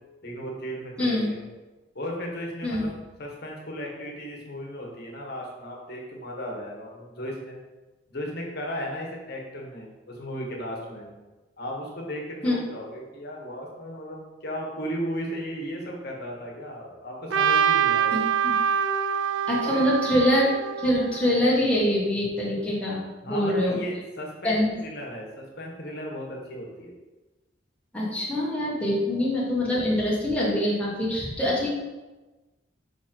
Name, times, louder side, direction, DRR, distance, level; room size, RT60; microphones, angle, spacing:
voice 1, 0.2-1.4 1.9-2.9 3.2-7.6 8.1-11.1 11.6-18.2 19.6-19.8 23.2-26.9, equal, 60° left, -1 dB, 1.4 m, -35 dB
Trumpet, 17.3-21.5, right 8 dB, 85° right, 0.4 m, -25 dB
voice 2, 19.5-20.5 20.8-23.8 24.4-24.7 27.9-31.7, left 1 dB, 5° left, -6 dB, 1.6 m, -24 dB
5.7 x 3.9 x 4.5 m, 1.2 s
head